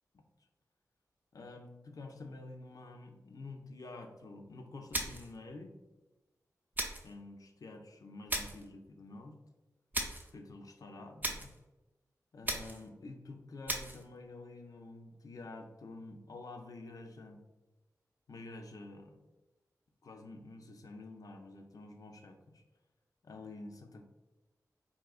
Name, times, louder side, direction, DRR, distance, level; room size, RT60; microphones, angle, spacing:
voice 1, 1.3-5.7 7.0-9.4 10.3-11.5 12.3-17.4 18.3-19.2 20.0-22.6 23.2-24.0, left 2 dB, 65° left, 5 dB, 0.4 m, -49 dB
sound 1, 4.9-5.4 6.7-7.1 8.3-8.7 9.9-10.3 11.2-11.6 12.4-12.9 13.7-14.0, right 1 dB, 25° right, 0.6 m, -37 dB
3.6 x 2.7 x 2.4 m, 1.1 s
cardioid pair, 50°, 7 cm